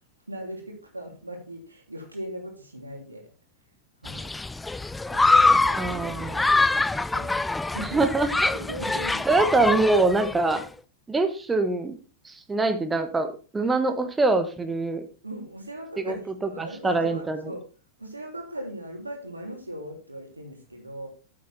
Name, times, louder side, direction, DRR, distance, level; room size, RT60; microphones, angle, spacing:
voice 1, 0.3-3.3 4.0-4.3 5.1-8.0 8.5-9.4 15.2-17.6 18.0-21.1, right 1 dB, 80° right, 1 dB, 2.9 m, -39 dB
Human group actions, 4.0-10.6, left 3 dB, 10° left, 0.4 m, -24 dB
voice 2, 5.8-6.4 7.8-8.5 9.3-10.6 11.1-11.9 12.2-15.0 16.0-16.1 16.6-17.4, right 3 dB, 15° right, 8 dB, 1.4 m, -24 dB
9.4 x 7.6 x 4.2 m, 0.36 s
figure-of-eight pair, 90°, 0 cm